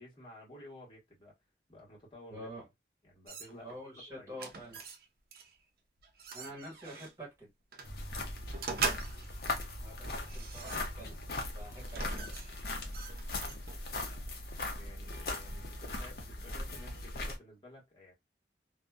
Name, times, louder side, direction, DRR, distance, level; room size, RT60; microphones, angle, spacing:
voice 1, 0.0-1.3 1.7-2.5 3.0-3.7 4.1-4.3 14.7-18.1, left 1 dB, 30° left, 1.2 m, -53 dB
voice 2, 2.3-2.7 3.6-4.8 6.3-7.5 9.8-11.2 11.5-12.4, equal, 15° right, 1.5 m, -47 dB
sound 1, 3.3-3.8 4.4-5.0 5.3-5.5 6.0-7.1 7.7-7.9 8.5-9.4 10.0-11.2 11.8-13.9, right 4 dB, 55° right, 0.5 m, -41 dB
sound 2, 7.8-17.4, left 2 dB, 55° left, 0.6 m, -39 dB
2.6 x 2.1 x 2.2 m
head